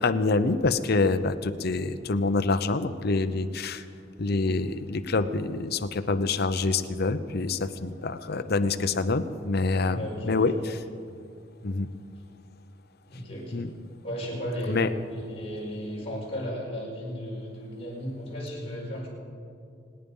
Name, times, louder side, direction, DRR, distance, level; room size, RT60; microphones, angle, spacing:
voice 1, 0.0-3.8 4.2-10.5 11.6-11.9 13.5-13.7 14.7-14.9, left 3 dB, 55° left, 10 dB, 0.7 m, -26 dB
voice 2, 9.9-10.5 13.1-13.7 14.0-14.8 15.1-19.1, equal, 30° left, -4 dB, 5.3 m, -35 dB
26.5 x 9.9 x 5.5 m, 2.4 s
head